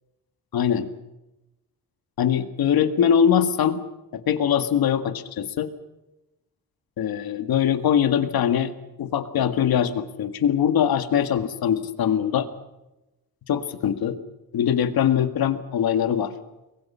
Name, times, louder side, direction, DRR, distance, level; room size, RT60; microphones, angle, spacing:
voice 1, 0.5-0.9 2.2-3.8 4.1-5.7 7.0-8.7 9.0-12.5 13.5-14.2 14.5-16.3, left 9 dB, 75° left, 9 dB, 1.9 m, -22 dB
29.5 x 22.5 x 5.7 m, 0.98 s
cardioid pair, 140°, 37 cm